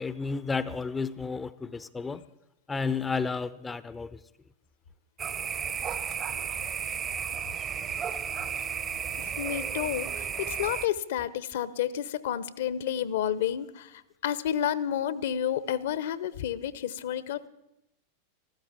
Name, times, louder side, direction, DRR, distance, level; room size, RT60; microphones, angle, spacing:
voice 1, 0.0-2.2 2.7-4.2, left 4 dB, 15° left, 0.6 m, -32 dB
sound 1, 5.2-10.9, right 7 dB, 25° right, 0.8 m, -33 dB
voice 2, 9.2-17.5, left 10 dB, 55° left, 0.8 m, -30 dB
14.5 x 13.5 x 7.4 m
figure-of-eight pair, 90°, 0 cm